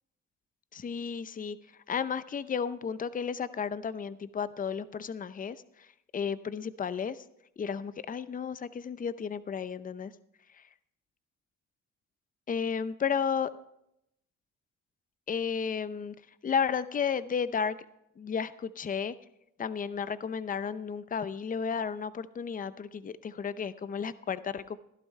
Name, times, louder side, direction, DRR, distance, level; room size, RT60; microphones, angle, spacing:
voice 1, 0.7-1.6 1.9-5.9 6.1-7.2 7.6-10.1 10.6-10.7 12.5-13.5 15.3-16.1 16.4-17.8 18.2-19.1 19.6-24.8, left 6 dB, 30° left, 15 dB, 0.6 m, -33 dB
15.5 x 11.5 x 3.2 m, 0.78 s
cardioid pair, 90°, 30 cm